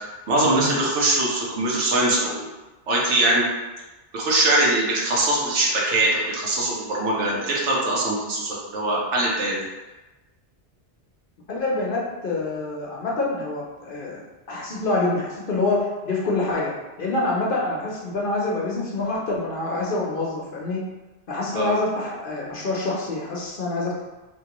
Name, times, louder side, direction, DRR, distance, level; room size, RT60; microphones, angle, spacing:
voice 1, 0.3-2.5 2.9-3.5 4.1-9.6 21.5-21.7, right 2 dB, 80° right, -4 dB, 1.2 m, -22 dB
voice 2, 11.5-14.2 14.5-16.7 17.0-20.8 21.3-24.0, left 2 dB, 55° left, -3 dB, 0.8 m, -26 dB
3.5 x 2.9 x 2.9 m, 1.1 s
omnidirectional pair, 1.2 m